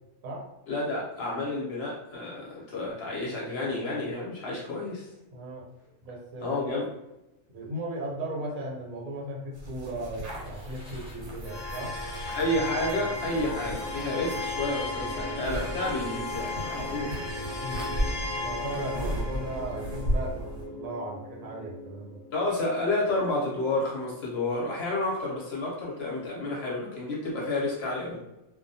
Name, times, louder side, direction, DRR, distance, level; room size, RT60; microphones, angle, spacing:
voice 1, 0.7-5.1 6.4-6.9 12.4-17.2 22.3-28.2, left 2 dB, 60° left, -4 dB, 0.8 m, -30 dB
voice 2, 5.3-5.7 6.0-6.6 7.5-12.0 17.6-18.0 18.4-22.2, right 1 dB, 80° right, -3 dB, 1.1 m, -37 dB
sound 1, 9.5-20.7, equal, 55° right, 0.9 m, -36 dB
Car / Engine starting, 10.4-17.3, right 3 dB, 5° right, 0.8 m, -48 dB
sound 2, 11.4-22.5, left 2 dB, 25° left, 0.6 m, -36 dB
2.3 x 2.1 x 2.6 m, 0.95 s
omnidirectional pair, 1.4 m